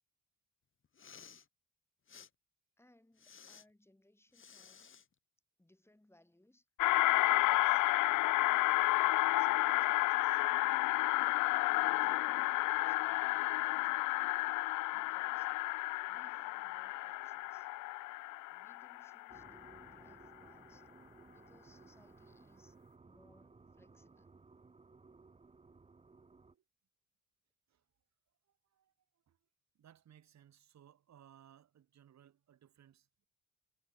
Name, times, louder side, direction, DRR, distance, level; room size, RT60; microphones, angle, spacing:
Respiratory sounds, 0.8-1.5 2.1-2.3 3.2-3.6 4.3-5.1, left 7 dB, 40° left, 2.7 m, -56 dB
voice 1, 2.8-4.9 5.6-6.7 7.2-7.9 8.3-10.5 11.7-14.1 14.9-15.5 16.1-17.7 18.5-20.9 21.3-22.8 23.0-24.4, left 1 dB, 10° left, 7.9 m, -67 dB
sound 1, 6.8-19.5, left 19 dB, 80° left, 0.5 m, -31 dB
sound 2, 19.3-26.6, right 4 dB, 20° right, 1.3 m, -60 dB
voice 2, 28.5-29.4 29.7-33.3, right 10 dB, 65° right, 5.9 m, -63 dB
cardioid pair, 90°, 30 cm